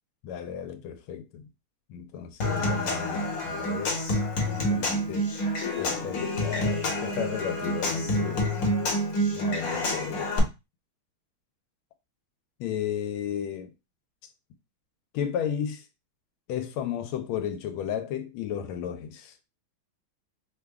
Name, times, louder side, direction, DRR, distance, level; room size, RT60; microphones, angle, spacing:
voice 1, 0.2-1.5 1.9-4.0 4.4-5.3 5.7-8.5 9.3-10.3 12.6-13.7 15.1-15.8 16.5-19.3, left 9 dB, 85° left, 1.4 m, -34 dB
Human voice / Acoustic guitar / Percussion, 2.4-10.4, left 1 dB, 55° left, 1.2 m, -28 dB
3.5 x 2.2 x 3.4 m
omnidirectional pair, 2.3 m